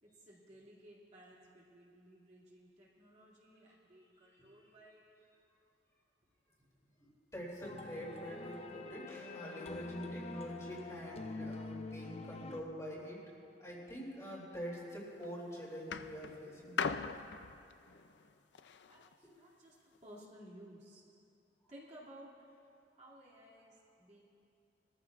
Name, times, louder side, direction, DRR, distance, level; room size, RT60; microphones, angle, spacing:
voice 1, 0.0-5.0 18.9-21.2 21.7-22.3 23.0-24.3, right 1 dB, 40° right, -7 dB, 2.6 m, -57 dB
voice 2, 7.3-13.2 13.6-16.8 19.2-19.3, equal, 20° left, -5 dB, 2.8 m, -45 dB
sound 1, 7.6-12.6, left 3 dB, 35° left, 0.6 m, -46 dB
sound 2, 14.9-15.3 15.9-19.1 20.0-20.1, left 6 dB, 80° left, 0.5 m, -40 dB
22.5 x 14.0 x 2.5 m, 2.7 s
head